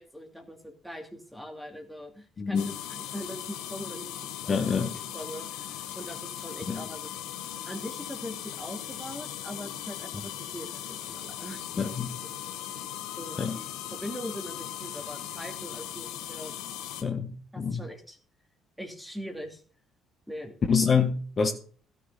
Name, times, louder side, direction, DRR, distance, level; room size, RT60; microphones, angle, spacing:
voice 1, 0.0-4.6 5.1-7.1 7.6-11.9 12.3-12.4 13.2-16.6 17.5-18.2 18.8-19.6 20.3-20.5, equal, ahead, 2.8 m, -41 dB
voice 2, 2.4-2.7 4.5-4.9 6.7-6.8 11.8-12.2 13.4-13.6 17.0-17.8 20.7-21.5, left 6 dB, 40° left, 1.6 m, -26 dB
sound 1, 2.6-17.0, left 11 dB, 70° left, 1.2 m, -39 dB
16.5 x 7.1 x 4.2 m
hypercardioid pair, 50°, 0 cm